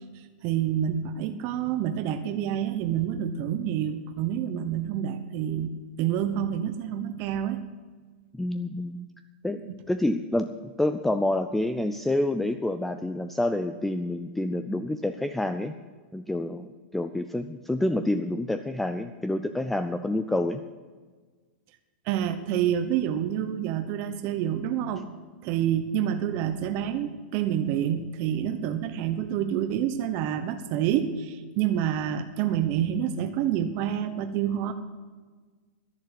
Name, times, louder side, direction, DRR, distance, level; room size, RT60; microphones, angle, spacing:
voice 1, 0.1-7.6 9.7-9.8 22.0-25.1 25.4-34.7, right 10 dB, 40° right, 8 dB, 0.9 m, -28 dB
voice 2, 8.4-9.1 9.4-9.6 9.9-10.5 10.8-15.8 16.1-20.6, left 1 dB, 5° left, 9 dB, 0.4 m, -28 dB
11.5 x 10.5 x 7.9 m, 1.4 s
supercardioid pair, 150°, 6 cm